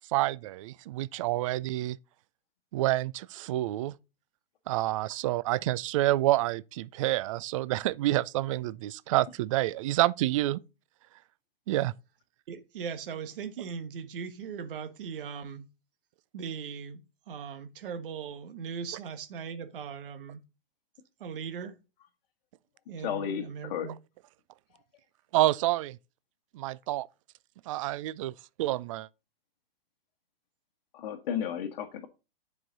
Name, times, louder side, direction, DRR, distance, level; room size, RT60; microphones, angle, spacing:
voice 1, 0.1-2.0 2.7-3.9 4.7-10.6 11.7-11.9 25.3-26.0 26.5-27.1 27.7-28.3 28.6-29.1, right 16 dB, 35° right, 0.4 m, -28 dB
voice 2, 12.5-15.7 16.3-17.0 17.3-20.4 21.2-21.8 22.9-24.0, right 6 dB, 65° right, 1.3 m, -39 dB
voice 3, 23.0-23.9 30.9-32.1, left 9 dB, 50° left, 1.4 m, -33 dB
10.0 x 5.0 x 4.0 m
hypercardioid pair, 130°, 29 cm